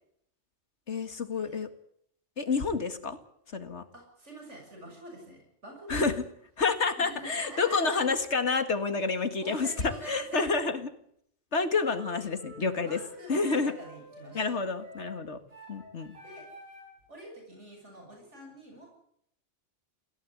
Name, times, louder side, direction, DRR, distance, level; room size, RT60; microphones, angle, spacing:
voice 1, 0.9-1.7 2.4-3.2 3.5-3.8 5.9-6.1 6.6-9.7 10.1-10.9 11.5-13.0 13.3-13.7 14.3-15.4 15.7-16.2, left 4 dB, 65° left, 9 dB, 2.3 m, -29 dB
voice 2, 3.9-6.1 7.0-8.1 9.4-10.5 12.8-14.6 16.2-16.5 17.1-19.0, right 1 dB, 70° right, 1 dB, 7.3 m, -46 dB
sound 1, 11.9-17.0, equal, 55° right, 8.4 m, -49 dB
20.5 x 16.5 x 9.5 m, 0.70 s
omnidirectional pair, 1.2 m